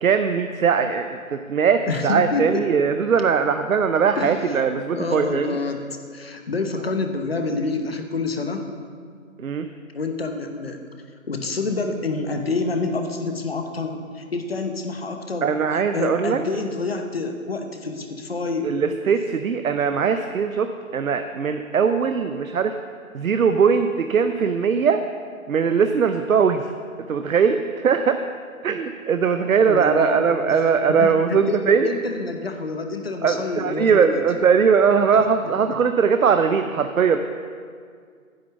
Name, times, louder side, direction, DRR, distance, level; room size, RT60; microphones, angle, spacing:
voice 1, 0.0-5.6 9.4-9.7 15.4-16.4 18.6-22.8 23.1-25.0 25.5-26.7 27.1-28.2 28.6-31.9 33.2-37.2, right 6 dB, 75° right, 8 dB, 0.7 m, -20 dB
voice 2, 1.9-2.7 4.1-4.6 4.9-5.9 6.1-8.7 9.9-10.8 11.3-18.7 29.6-30.6 31.0-34.2 35.1-35.2, left 3 dB, 45° left, 5 dB, 1.0 m, -28 dB
9.7 x 6.5 x 7.0 m, 2.1 s
hypercardioid pair, 175°, 42 cm